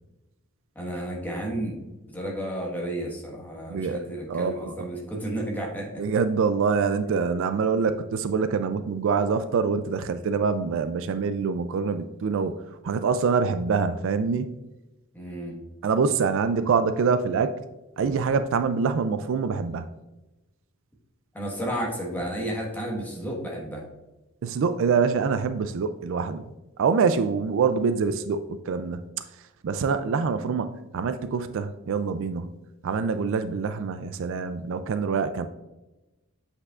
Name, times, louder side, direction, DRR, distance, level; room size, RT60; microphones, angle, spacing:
voice 1, 0.7-6.0 15.1-15.6 21.3-23.8, right 1 dB, 10° left, -2 dB, 1.3 m, -32 dB
voice 2, 3.7-4.0 4.3-4.9 6.0-12.6 12.8-14.5 15.8-17.5 18.0-19.9 24.4-26.5 26.8-29.0 29.6-32.5 32.8-35.5, right 5 dB, 60° right, 11 dB, 0.3 m, -25 dB
8.2 x 5.3 x 2.4 m, 1.0 s
head